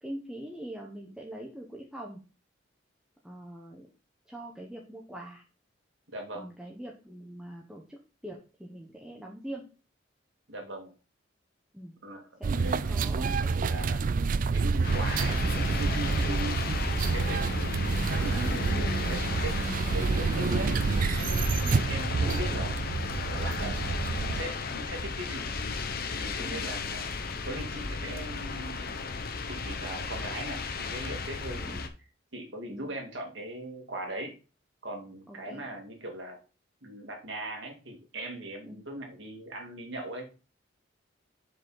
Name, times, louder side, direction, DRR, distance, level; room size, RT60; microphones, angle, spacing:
voice 1, 0.0-2.2 3.2-3.9 4.3-5.4 6.3-9.7 11.7-11.9 12.4-13.5 16.2-16.5 21.6-21.9 26.4-26.6 31.6-31.8 32.7-32.9 35.3-35.6 38.6-38.8, right 1 dB, 5° right, -2 dB, 1.0 m, -43 dB
voice 2, 6.1-6.5 10.5-10.9 12.0-14.1 14.5-15.5 16.0-16.6 17.1-18.6 19.1-19.6 19.9-20.8 21.2-21.5 21.9-22.9 23.3-23.7 24.1-25.6 26.2-27.1 27.4-29.1 29.5-31.9 32.3-34.3 34.8-36.4 36.8-40.3, right 1 dB, 65° right, 2 dB, 2.2 m, -40 dB
sound 1, 12.4-24.4, right 4 dB, 45° right, 0.4 m, -28 dB
sound 2, 14.8-31.9, left 4 dB, 55° left, 0.9 m, -34 dB
7.0 x 5.3 x 4.0 m, 0.34 s
head